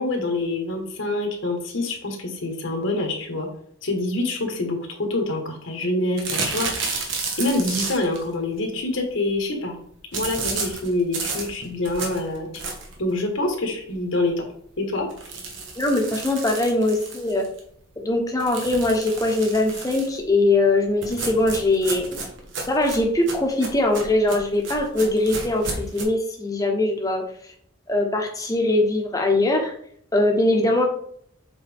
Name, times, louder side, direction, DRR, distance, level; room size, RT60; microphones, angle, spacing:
voice 1, 0.0-3.5 3.8-7.1 7.4-9.7 10.1-12.5 13.0-14.4 14.8-15.1, left 2 dB, 70° left, 3 dB, 1.4 m, -26 dB
sound 1, 6.2-8.2 10.1-13.0 13.5-13.6 13.9-14.0 14.3-14.4 15.1-17.6 18.4-20.2 21.0-26.0, right 4 dB, 65° right, 1.3 m, -32 dB
voice 2, 15.8-17.4 18.0-22.2 22.7-27.2 27.9-29.7 30.1-30.9, left 2 dB, 15° left, 1 dB, 1.0 m, -21 dB
7.4 x 4.1 x 3.6 m, 0.64 s
head